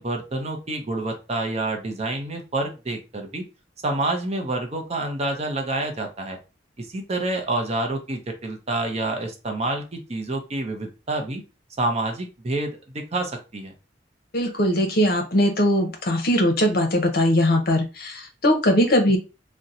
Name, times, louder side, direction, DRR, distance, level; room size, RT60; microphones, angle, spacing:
voice 1, 0.0-3.4 3.8-6.4 6.8-11.4 11.8-13.7, right 2 dB, 35° right, 3 dB, 0.6 m, -28 dB
voice 2, 14.3-19.2, equal, 55° left, 4 dB, 0.7 m, -20 dB
2.8 x 2.1 x 3.7 m, 0.29 s
head